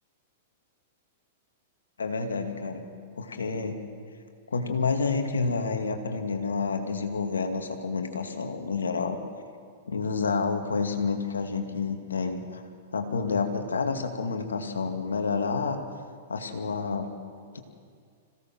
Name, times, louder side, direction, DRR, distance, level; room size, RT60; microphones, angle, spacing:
voice 1, 2.0-2.8 3.2-3.8 4.5-9.2 9.9-12.6 12.9-15.8 16.3-17.1 17.5-17.6, left 4 dB, 80° left, 5 dB, 2.2 m, -29 dB
26.5 x 16.5 x 6.2 m, 2.2 s
figure-of-eight pair, 105°, 0 cm